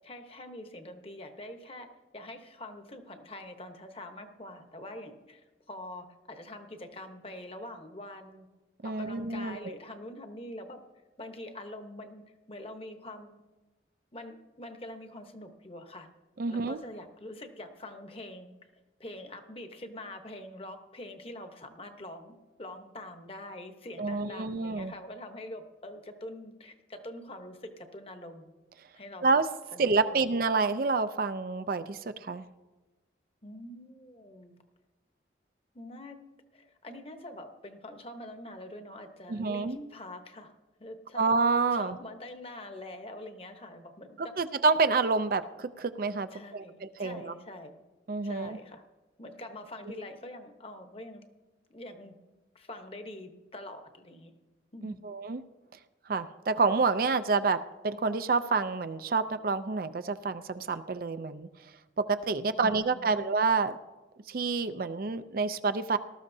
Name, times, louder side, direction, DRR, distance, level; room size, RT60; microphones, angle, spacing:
voice 1, 0.0-8.5 8.8-10.8 11.2-13.3 14.1-16.1 16.5-18.6 19.0-28.5 28.9-29.3 29.7-30.2 33.4-34.6 35.7-36.2 36.5-40.5 40.8-41.3 41.7-44.3 46.3-47.8 48.2-48.8 49.2-51.2 51.7-52.2 52.5-54.3 54.7-55.0 62.4-63.2, left 1 dB, 30° left, 6 dB, 1.0 m, -45 dB
voice 2, 8.8-9.7 16.4-16.8 24.0-24.9 29.2-29.4 29.8-32.4 39.3-39.8 41.2-42.0 44.4-47.3 48.1-48.6 54.8-55.4 56.1-61.5 62.0-63.8 64.3-66.0, right 4 dB, 50° right, 11 dB, 0.4 m, -28 dB
19.0 x 13.0 x 2.7 m, 1.2 s
head